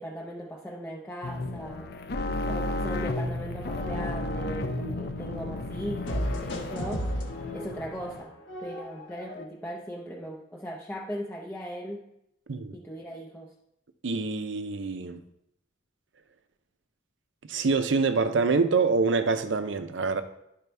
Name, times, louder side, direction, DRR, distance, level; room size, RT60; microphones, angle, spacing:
voice 1, 0.0-1.9 2.5-7.1 7.5-12.1 12.7-13.5, equal, 10° left, -3 dB, 0.6 m, -38 dB
sound 1, 1.2-8.2, left 2 dB, 55° left, 0.6 m, -33 dB
sound 2, 3.4-5.5 6.1-9.5, equal, 75° left, 1.2 m, -35 dB
voice 2, 14.0-15.2 17.5-20.2, right 4 dB, 80° right, 9 dB, 0.6 m, -25 dB
10.5 x 5.1 x 3.4 m, 0.80 s
head